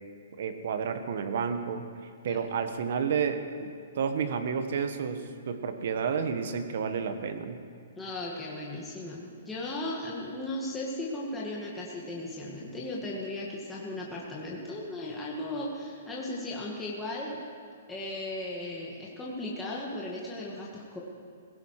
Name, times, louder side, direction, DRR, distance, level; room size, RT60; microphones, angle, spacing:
voice 1, 0.4-1.8 2.2-7.6, right 6 dB, 60° right, 8 dB, 1.5 m, -31 dB
voice 2, 8.0-17.4 17.9-21.0, left 1 dB, 10° left, -5 dB, 1.9 m, -36 dB
17.0 x 16.5 x 4.9 m, 2.4 s
hypercardioid pair, 155°, 0 cm